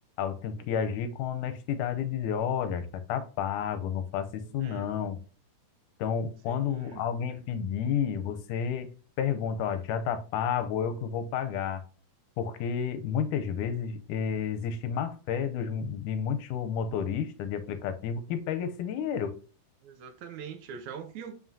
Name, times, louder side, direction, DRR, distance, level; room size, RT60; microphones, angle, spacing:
voice 1, 0.2-5.2 6.0-8.9 9.2-11.8 12.4-19.4, left 7 dB, 80° left, 2.1 m, -31 dB
voice 2, 4.6-4.9 6.5-7.0 19.8-21.3, right 7 dB, 75° right, 1.9 m, -43 dB
7.4 x 5.6 x 2.7 m
omnidirectional pair, 3.7 m